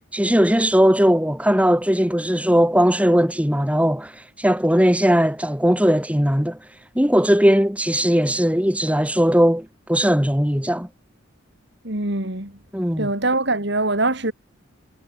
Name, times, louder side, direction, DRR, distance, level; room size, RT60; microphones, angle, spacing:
voice 1, 0.1-6.6 6.9-10.9 12.7-13.1, equal, 5° right, 2.8 m, -18 dB
voice 2, 11.8-12.5 13.0-14.3, right 2 dB, 60° right, 3.8 m, -23 dB
head